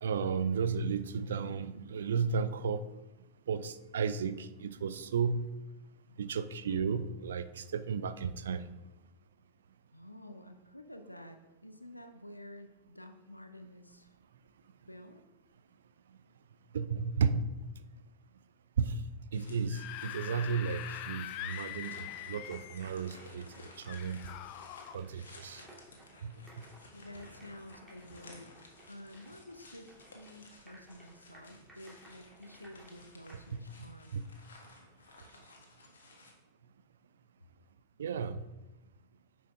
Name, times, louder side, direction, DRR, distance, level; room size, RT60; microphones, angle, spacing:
voice 1, 0.0-2.8 3.5-5.5 6.2-8.7 16.7-17.5 18.8-19.0 19.3-23.5 23.8-24.3 24.9-25.6 26.2-26.3 34.1-34.2 38.0-38.4, right 6 dB, 65° right, 12 dB, 0.5 m, -33 dB
voice 2, 9.9-14.2 14.9-15.3 26.9-28.5 28.9-34.2, left 1 dB, 85° left, 8 dB, 0.8 m, -50 dB
sound 1, 19.3-36.3, left 2 dB, 70° left, 1.6 m, -56 dB
Screaming / Screech, 19.5-22.9 23.9-25.0, left 12 dB, 45° left, 0.5 m, -43 dB
sound 2, 21.8-33.6, right 1 dB, 10° right, 2.9 m, -60 dB
9.3 x 6.2 x 3.6 m, 1.0 s
figure-of-eight pair, 90°, 0 cm